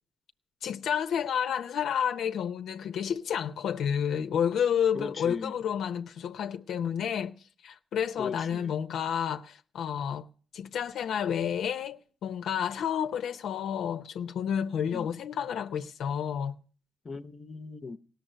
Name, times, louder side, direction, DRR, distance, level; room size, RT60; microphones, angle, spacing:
voice 1, 0.6-10.3 10.5-16.6, left 8 dB, 70° left, 0.6 m, -30 dB
voice 2, 4.9-5.5 8.2-8.7 14.9-15.1 17.0-18.0, left 4 dB, 35° left, 0.7 m, -38 dB
17.0 x 6.9 x 8.9 m
cardioid pair, 90°, 0 cm